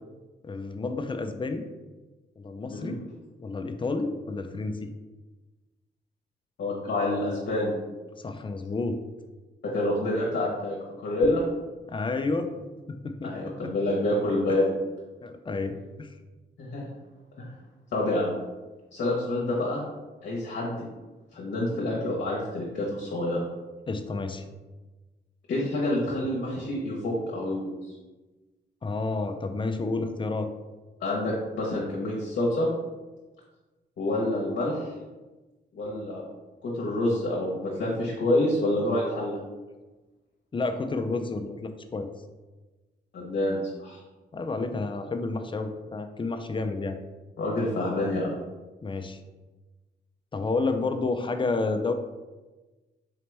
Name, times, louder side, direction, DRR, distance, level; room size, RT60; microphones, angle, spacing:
voice 1, 0.4-1.7 2.4-3.0 3.4-4.9 8.2-9.0 11.9-12.5 12.9-13.3 13.6-13.7 14.5-14.6 15.2-16.1 23.9-24.4 28.8-30.5 40.5-42.1 44.3-47.0 48.8-49.2 50.3-51.9, left 3 dB, 25° left, 7 dB, 0.4 m, -30 dB
voice 2, 6.6-7.7 9.6-11.4 13.2-14.7 16.6-16.8 17.4-17.5 17.9-18.4 18.9-19.8 20.2-20.8 21.3-23.4 25.5-27.9 31.0-32.7 34.0-34.9 35.7-36.2 36.6-39.4 43.1-44.0 47.4-48.3, left 1 dB, 70° left, -4 dB, 0.9 m, -27 dB
4.1 x 2.9 x 3.3 m, 1.2 s
cardioid pair, 85°, 19 cm